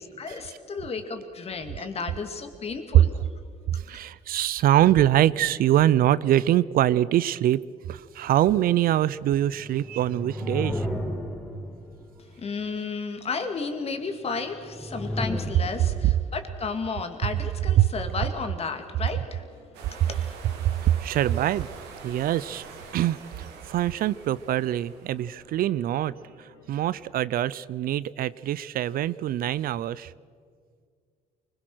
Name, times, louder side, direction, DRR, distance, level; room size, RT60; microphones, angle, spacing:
voice 1, 0.0-3.1 12.4-19.4 19.9-20.3, left 4 dB, 35° left, 6 dB, 2.4 m, -33 dB
voice 2, 3.7-7.6 7.9-10.9 17.8-17.9 20.6-21.7 22.0-22.6 22.9-26.1 26.4-30.1, right 12 dB, 60° right, 18 dB, 0.5 m, -24 dB
sound 1, 9.4-12.3 14.4-16.2, equal, 5° left, 4.0 m, -33 dB
sound 2, 19.1-27.1, left 2 dB, 85° left, 5.2 m, -55 dB
sound 3, 19.7-25.5, right 5 dB, 85° right, 2.9 m, -45 dB
24.0 x 21.5 x 6.3 m, 2.1 s
cardioid pair, 110°, 17 cm